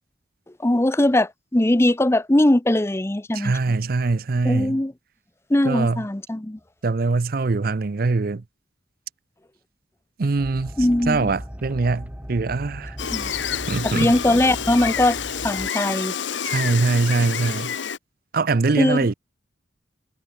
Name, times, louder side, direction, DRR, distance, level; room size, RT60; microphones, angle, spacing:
voice 1, 0.6-3.6 4.4-4.9 5.5-6.6 10.8-11.3 13.1-13.3 13.8-15.2 15.4-16.1 18.8-19.0, left 1 dB, 15° left, 0.6 m, -20 dB
voice 2, 3.3-4.8 5.6-6.0 6.8-8.4 10.2-10.7 11.1-13.0 13.7-14.1 16.4-17.7 18.3-19.1, right 3 dB, 50° right, 0.6 m, -22 dB
sound 1, 10.4-15.7, equal, 10° right, 4.8 m, -37 dB
Gull seagull, 13.0-18.0, left 8 dB, 75° left, 1.0 m, -28 dB
head